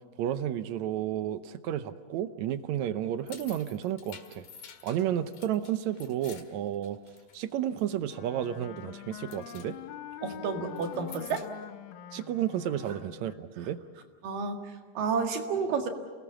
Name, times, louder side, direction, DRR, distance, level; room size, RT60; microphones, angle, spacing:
voice 1, 0.2-4.5 4.8-7.0 7.3-9.8 12.1-13.8, right 10 dB, 70° right, 11 dB, 1.9 m, -32 dB
sound 1, 3.0-7.5 7.8-8.3 8.6-8.9 9.2-9.7 10.7-11.6, left 7 dB, 60° left, 3.1 m, -50 dB
Wind instrument woodwind instrument, 8.1-13.4, left 11 dB, 85° left, 2.5 m, -45 dB
voice 2, 10.2-11.5 14.2-15.9, right 5 dB, 90° right, 3 dB, 3.6 m, -31 dB
28.0 x 19.5 x 7.5 m, 1.4 s
omnidirectional pair, 3.8 m